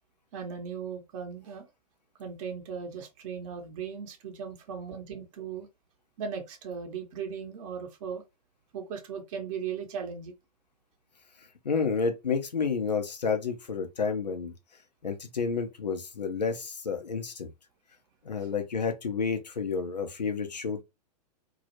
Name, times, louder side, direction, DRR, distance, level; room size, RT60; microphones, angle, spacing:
voice 1, 0.3-1.7 2.2-5.7 6.2-8.2 8.7-10.3, right 6 dB, 55° right, 0.7 m, -37 dB
voice 2, 11.6-14.5 15.0-17.5 18.2-20.8, left 5 dB, 90° left, 0.6 m, -30 dB
2.3 x 2.0 x 2.8 m
hypercardioid pair, 105°, 21 cm